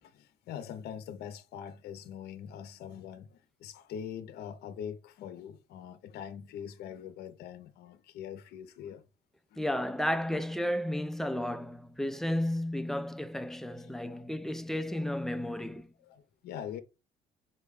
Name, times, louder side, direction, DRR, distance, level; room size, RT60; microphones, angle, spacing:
voice 1, 0.0-9.0 9.5-9.7 10.3-10.4 13.8-14.2 16.0-16.8, left 8 dB, 75° left, 0.6 m, -43 dB
voice 2, 9.6-15.9, left 1 dB, ahead, 0.3 m, -33 dB
5.4 x 2.2 x 3.5 m
cardioid pair, 110°, 17 cm